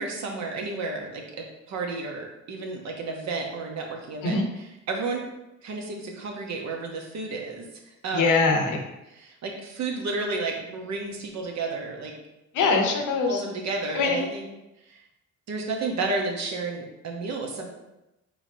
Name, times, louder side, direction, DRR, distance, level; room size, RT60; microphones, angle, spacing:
voice 1, 0.0-4.4 4.9-5.2 5.6-8.4 9.2-12.1 13.3-14.5 14.9-15.0 15.5-17.6, right 3 dB, 65° right, 1 dB, 1.0 m, -32 dB
voice 2, 8.1-8.8 12.5-13.4 13.9-14.2, left 4 dB, 85° left, 3 dB, 0.8 m, -22 dB
4.7 x 3.2 x 2.7 m, 0.94 s
cardioid pair, 90°, 30 cm